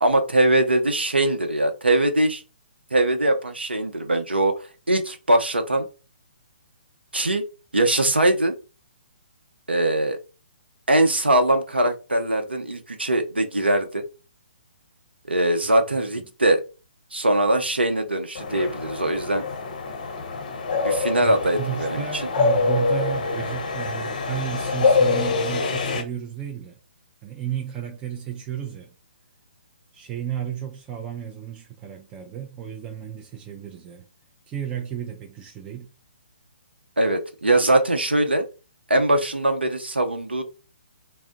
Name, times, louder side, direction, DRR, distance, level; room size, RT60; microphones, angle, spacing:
voice 1, 0.0-2.4 2.9-4.5 4.9-5.9 7.1-7.4 7.7-8.6 9.7-10.2 10.9-14.0 15.3-16.6 17.1-19.4 20.8-22.2 37.0-38.4 38.9-40.4, right 1 dB, 85° right, 0.7 m, -21 dB
sound 1, 18.4-26.0, left 4 dB, 50° left, 0.6 m, -25 dB
voice 2, 21.2-26.8 27.2-29.0 29.9-34.1 34.5-35.9, right 10 dB, 15° right, 0.4 m, -33 dB
2.1 x 2.1 x 3.8 m
figure-of-eight pair, 135°, 6 cm